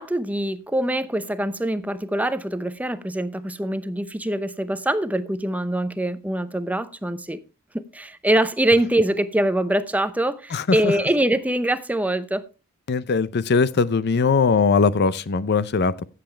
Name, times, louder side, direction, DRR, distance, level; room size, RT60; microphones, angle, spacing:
voice 1, 0.0-7.4 7.7-12.4, right 1 dB, 5° right, 0.6 m, -24 dB
voice 2, 10.5-10.9 12.9-16.1, left 4 dB, 50° left, 0.5 m, -20 dB
16.0 x 7.7 x 3.3 m
head